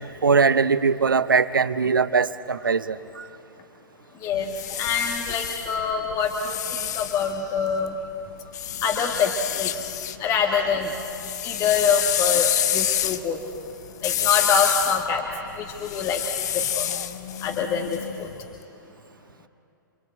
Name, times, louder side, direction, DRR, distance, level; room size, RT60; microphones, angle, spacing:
voice 1, 0.2-3.3, right 5 dB, 75° right, 14 dB, 0.9 m, -21 dB
voice 2, 4.2-8.0 8.8-9.7 10.2-11.0 11.4-13.4 14.0-16.2 16.5-16.9 17.4-18.3, left 6 dB, 30° left, 2 dB, 1.8 m, -25 dB
sound 1, 4.3-7.9 8.5-10.2 10.5-18.4, left 10 dB, 55° left, 1.0 m, -28 dB
28.0 x 24.5 x 8.1 m, 2.6 s
figure-of-eight pair, 110°, 11 cm